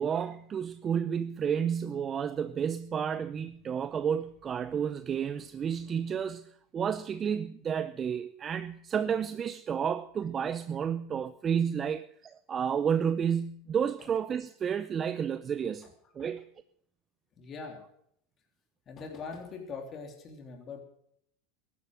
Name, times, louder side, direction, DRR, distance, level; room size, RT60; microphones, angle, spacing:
voice 1, 0.0-15.9 16.2-16.4, right 7 dB, 30° right, 0.6 m, -31 dB
voice 2, 17.4-17.8 18.9-20.8, left 4 dB, 35° left, 3.4 m, -42 dB
14.0 x 11.0 x 7.7 m
hypercardioid pair, 105°, 0 cm